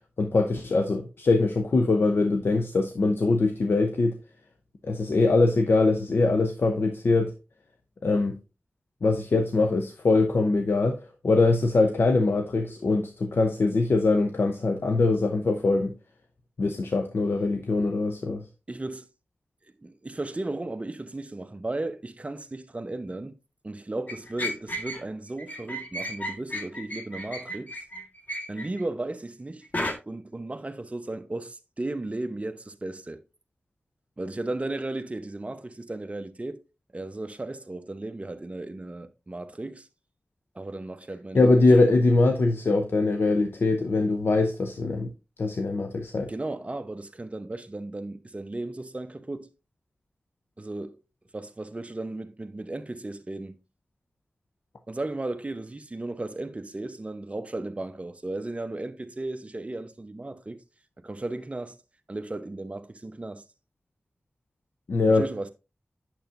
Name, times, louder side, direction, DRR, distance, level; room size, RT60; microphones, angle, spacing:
voice 1, 0.2-4.2 4.8-7.3 8.0-8.4 9.0-15.9 16.6-18.4 41.3-45.1 45.4-46.3 64.9-65.2, left 3 dB, 70° left, 0.7 m, -22 dB
voice 2, 18.7-19.1 19.8-23.3 23.6-27.8 28.5-33.2 34.2-36.6 36.9-39.9 40.5-41.6 46.3-49.5 50.6-51.0 51.3-53.6 54.9-60.6 61.0-61.8 62.1-63.4 65.1-65.5, right 2 dB, 35° right, 0.9 m, -35 dB
sound 1, 24.1-25.0 25.4-28.8 29.7-29.9, equal, 45° left, 1.7 m, -33 dB
8.6 x 7.0 x 2.6 m
cardioid pair, 45°, 4 cm